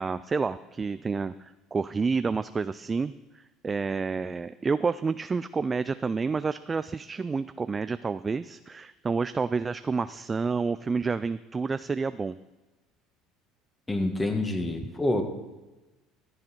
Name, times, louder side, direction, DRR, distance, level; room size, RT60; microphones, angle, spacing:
voice 1, 0.0-12.4, right 4 dB, 25° right, 13 dB, 0.3 m, -29 dB
voice 2, 13.9-15.2, left 2 dB, 15° left, 5 dB, 1.7 m, -27 dB
14.0 x 7.8 x 4.5 m, 1.1 s
supercardioid pair, 85°, 0 cm